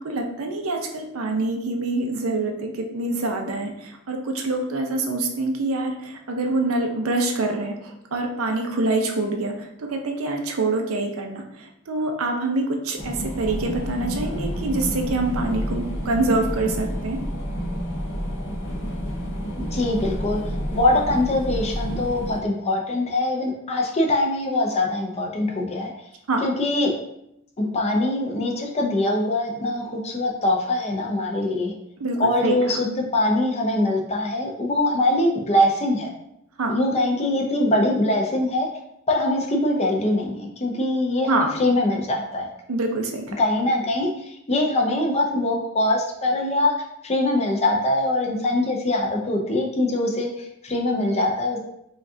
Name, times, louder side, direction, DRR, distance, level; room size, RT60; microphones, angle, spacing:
voice 1, 0.0-17.2 26.3-26.4 32.0-32.6 36.6-36.7 41.3-41.5 42.7-43.2, right 2 dB, 80° right, 3 dB, 0.6 m, -25 dB
sound 1, 13.0-22.4, equal, 65° left, 0.8 m, -29 dB
voice 2, 19.7-25.9 26.4-26.9 27.6-31.7 32.2-36.1 36.7-38.7 39.1-42.5 43.4-46.7 47.0-51.6, left 1 dB, 30° left, 1 dB, 0.6 m, -23 dB
5.1 x 2.4 x 2.7 m, 0.79 s
head